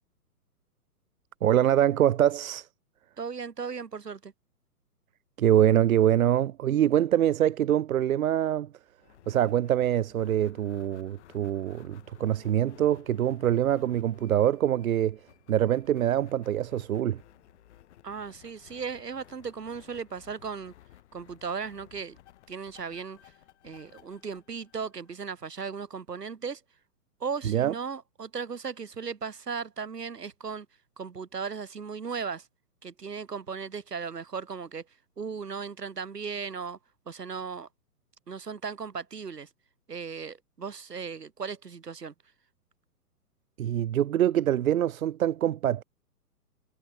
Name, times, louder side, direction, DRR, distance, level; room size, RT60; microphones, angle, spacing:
voice 1, 1.4-2.7 5.4-8.7 9.3-15.2 15.5-17.2 27.4-27.7 43.6-45.8, right 11 dB, 60° right, 0.8 m, -24 dB
voice 2, 3.2-4.3 18.0-20.7 21.1-22.2 22.5-23.3 23.6-26.6 27.2-30.7 31.0-32.5 32.8-34.8 35.2-36.8 37.1-37.7 38.3-39.5 39.9-42.1, right 5 dB, 85° right, 2.7 m, -36 dB
sound 1, 9.0-25.5, left 13 dB, 45° left, 5.8 m, -56 dB
hypercardioid pair, 135°, 47 cm